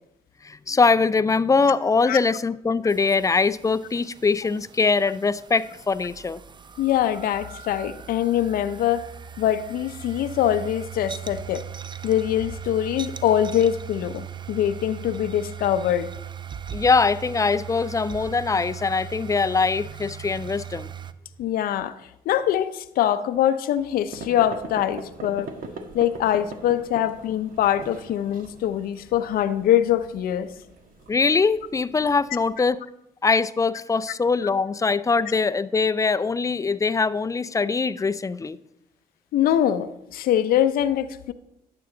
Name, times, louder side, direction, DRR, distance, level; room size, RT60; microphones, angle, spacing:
voice 1, 0.4-6.4 16.7-20.9 31.1-32.8 33.2-38.6, left 4 dB, 20° left, 0.4 m, -22 dB
sound 1, 2.9-21.1, right 9 dB, 30° right, 0.5 m, -39 dB
voice 2, 6.8-9.1 9.4-11.6 12.0-16.1 21.4-22.0 22.3-25.5 25.9-30.5 39.3-41.3, left 11 dB, 75° left, 0.6 m, -23 dB
sound 2, 24.1-32.6, right 3 dB, 65° right, 1.3 m, -42 dB
11.5 x 7.7 x 3.8 m
cardioid pair, 80°, 15 cm